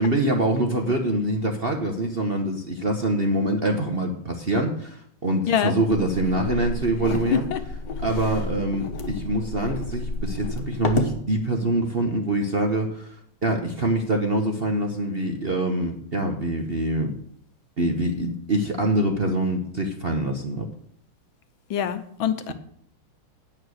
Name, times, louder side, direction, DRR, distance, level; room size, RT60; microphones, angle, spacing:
voice 1, 0.0-7.5 8.0-13.2 13.4-17.1 17.8-20.6, right 1 dB, 40° right, 4 dB, 1.0 m, -25 dB
sound 1, 5.9-11.2, left 3 dB, 50° left, 1.6 m, -31 dB
voice 2, 21.7-22.5, left 9 dB, 80° left, 10 dB, 1.6 m, -25 dB
9.0 x 8.8 x 6.4 m, 0.64 s
omnidirectional pair, 2.3 m